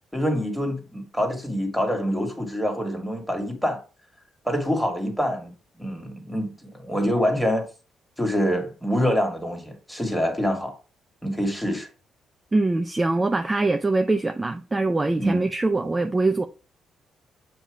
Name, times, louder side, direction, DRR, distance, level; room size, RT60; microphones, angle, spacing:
voice 1, 0.1-3.8 4.4-5.5 5.8-7.7 8.2-10.7 11.2-11.9 15.2-15.5, equal, ahead, 1.9 m, -25 dB
voice 2, 12.5-16.5, right 2 dB, 20° right, 0.5 m, -23 dB
7.3 x 2.9 x 4.9 m
cardioid pair, 90°, 0 cm